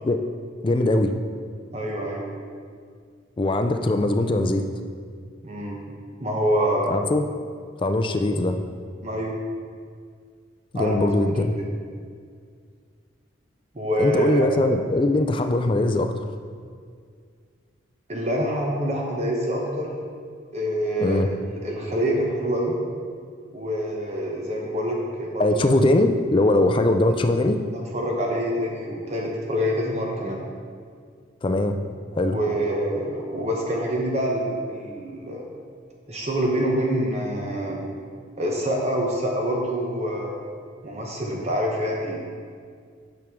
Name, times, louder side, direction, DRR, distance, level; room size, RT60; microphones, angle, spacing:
voice 1, 0.6-1.1 3.4-4.7 6.9-7.2 7.8-8.6 10.7-11.5 14.0-16.2 21.0-21.3 25.4-27.6 31.4-31.8 32.2-32.4, left 2 dB, 25° left, 7 dB, 0.3 m, -21 dB
voice 2, 1.7-2.3 5.4-5.8 6.2-6.9 9.0-9.4 10.7-11.1 13.7-14.5 18.1-19.9 20.5-22.8 23.5-25.6 27.7-30.4 32.2-35.5 36.1-37.9 38.4-40.3 40.8-42.2, equal, 35° right, -1 dB, 0.9 m, -26 dB
8.7 x 6.2 x 3.6 m, 2.1 s
head